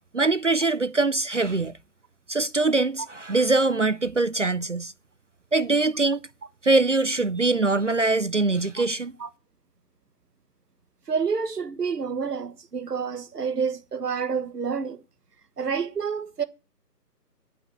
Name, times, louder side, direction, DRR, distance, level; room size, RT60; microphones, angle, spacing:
voice 1, 0.1-1.7 2.3-4.9 5.5-6.2 6.6-9.1, right 3 dB, 50° right, 0.5 m, -23 dB
voice 2, 11.1-15.0 15.6-16.4, right 6 dB, 70° right, 1.5 m, -28 dB
8.9 x 5.2 x 7.2 m
figure-of-eight pair, 170°, 49 cm